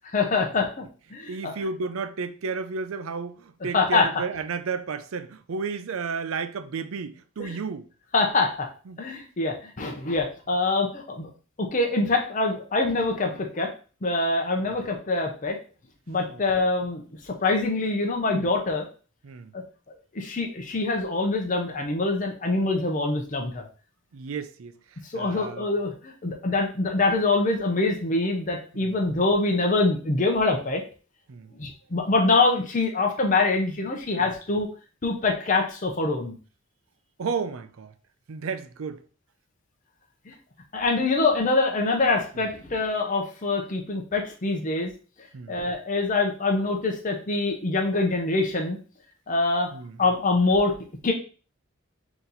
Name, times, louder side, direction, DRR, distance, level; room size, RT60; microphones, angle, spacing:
voice 1, 0.1-0.9 1.1-1.5 3.7-4.1 7.4-7.5 8.1-8.7 9.0-11.3 11.7-13.7 14.0-15.6 16.1-18.9 19.5-19.6 20.1-23.7 25.1-30.8 31.6-34.7 35.0-36.4 40.3-40.4 40.7-44.9 45.5-48.8 49.3-49.7 50.0-50.7 51.0-51.1, left 3 dB, 40° left, 0.7 m, -24 dB
voice 2, 1.3-7.9 8.9-9.0 16.3-16.4 18.3-18.4 19.2-19.5 24.1-25.7 28.7-29.0 31.3-31.5 34.2-34.3 37.2-37.9 38.3-39.0 42.3-42.5 45.3-45.6 49.7-50.0, right 5 dB, 80° right, 0.5 m, -33 dB
4.1 x 2.9 x 3.9 m
head